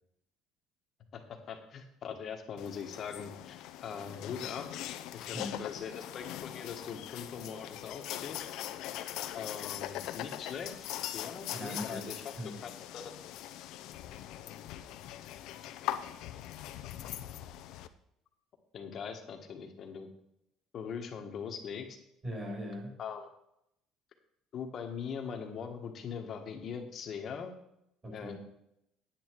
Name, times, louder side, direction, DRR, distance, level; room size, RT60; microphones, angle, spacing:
voice 1, 1.1-4.8 5.1-8.4 9.3-10.9 11.1-12.2 12.6-13.0 18.7-20.1 20.7-22.0 23.0-23.3 24.5-27.5 28.1-28.3, left 6 dB, 40° left, 4 dB, 1.4 m, -41 dB
sound 1, 2.6-17.9, left 12 dB, 65° left, 0.6 m, -41 dB
voice 2, 11.5-12.5 22.2-23.0 28.0-28.4, equal, 20° right, -2 dB, 4.6 m, -40 dB
9.8 x 8.7 x 4.6 m, 0.79 s
cardioid pair, 150°, 0 cm